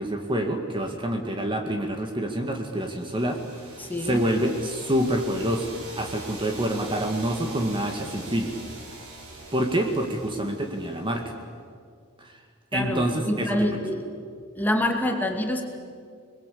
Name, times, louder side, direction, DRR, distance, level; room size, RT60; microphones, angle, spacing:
voice 1, 0.0-3.4 4.0-5.7 6.0-8.5 9.5-11.2 12.7-13.7, right 1 dB, 20° right, 3 dB, 1.9 m, -27 dB
sound 1, 2.6-11.3, right 2 dB, 70° right, 6.5 m, -42 dB
voice 2, 3.8-4.2 12.7-14.1 14.6-15.6, left 1 dB, 10° left, 3 dB, 2.3 m, -26 dB
28.0 x 21.0 x 8.5 m, 2.1 s
head